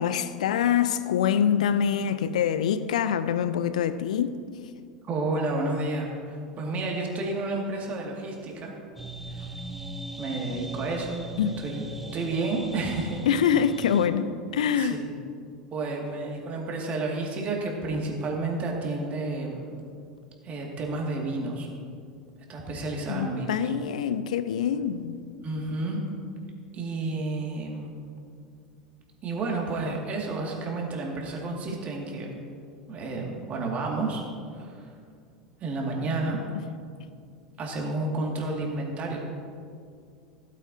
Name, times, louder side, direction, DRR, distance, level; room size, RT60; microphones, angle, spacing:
voice 1, 0.0-4.3 11.4-11.5 13.3-15.0 23.1-25.2, left 8 dB, 70° left, 13 dB, 0.5 m, -25 dB
voice 2, 5.1-8.7 9.4-9.5 10.2-11.2 11.6-11.8 12.1-13.2 14.8-15.1 15.7-19.7 20.4-21.7 22.5-23.7 25.4-26.0 26.7-27.9 29.2-32.3 32.9-34.2 34.5-34.9 35.6-36.4 37.6-39.2, right 2 dB, 35° right, -1 dB, 2.2 m, -31 dB
sound 1, 9.0-14.1, right 1 dB, 5° right, 0.9 m, -39 dB
15.5 x 8.4 x 2.8 m, 2.3 s
figure-of-eight pair, 80°, 4 cm